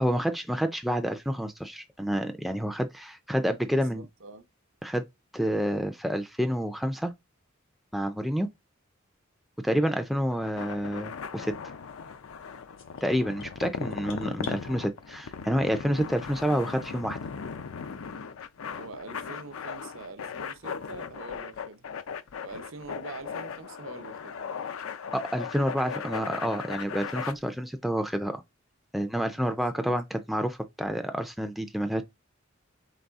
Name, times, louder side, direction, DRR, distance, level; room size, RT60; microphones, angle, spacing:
voice 1, 0.0-4.1 4.8-5.0 5.3-7.1 7.9-8.5 9.6-11.5 13.0-17.2 25.1-28.4 28.9-32.0, equal, ahead, 0.4 m, -28 dB
voice 2, 3.7-4.5 18.7-21.9 22.4-24.6 29.3-29.8, right 3 dB, 70° right, 0.7 m, -45 dB
sound 1, 10.3-27.3, left 6 dB, 90° left, 0.5 m, -38 dB
sound 2, 12.8-14.6, left 3 dB, 75° left, 1.2 m, -47 dB
4.1 x 3.2 x 3.5 m
head